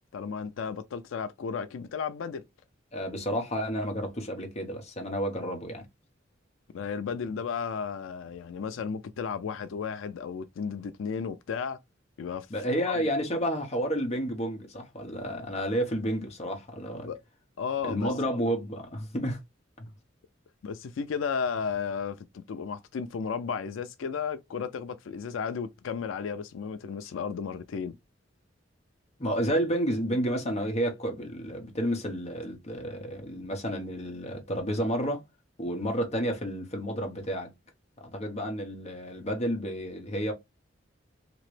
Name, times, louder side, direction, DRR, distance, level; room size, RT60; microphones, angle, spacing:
voice 1, 0.1-2.4 6.7-11.8 12.2-12.5 12.9-13.1 17.0-17.2 17.6-18.1 20.6-28.0, left 6 dB, 90° left, 0.4 m, -34 dB
voice 2, 2.9-5.8 12.5-17.1 17.8-19.4 19.8-19.9 29.2-35.2 35.6-37.5 38.0-40.3, equal, 35° left, 1.0 m, -31 dB
3.0 x 2.9 x 3.1 m
head